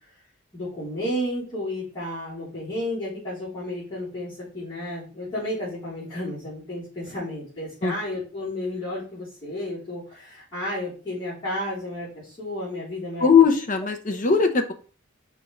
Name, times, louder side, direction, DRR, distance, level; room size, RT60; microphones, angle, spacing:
voice 1, 0.5-13.3, left 1 dB, 25° left, -14 dB, 3.5 m, -32 dB
voice 2, 13.2-14.7, left 6 dB, 40° left, 6 dB, 0.7 m, -19 dB
6.0 x 3.2 x 5.1 m, 0.38 s
head